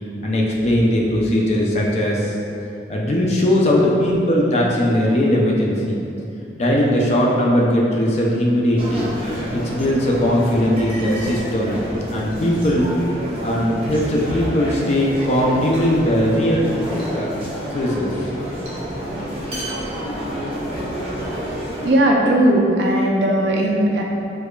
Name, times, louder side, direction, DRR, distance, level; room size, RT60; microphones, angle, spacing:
voice 1, 0.2-2.3 2.9-6.0 6.6-9.1 9.5-11.8 12.1-12.9 13.4-16.7 17.1-17.3 17.7-18.2, equal, 35° left, -3 dB, 0.4 m, -19 dB
sound 1, 8.8-21.9, equal, 30° right, 0.7 m, -29 dB
voice 2, 21.8-24.0, right 1 dB, 75° right, -1 dB, 0.4 m, -17 dB
4.6 x 2.4 x 2.2 m, 2.7 s
head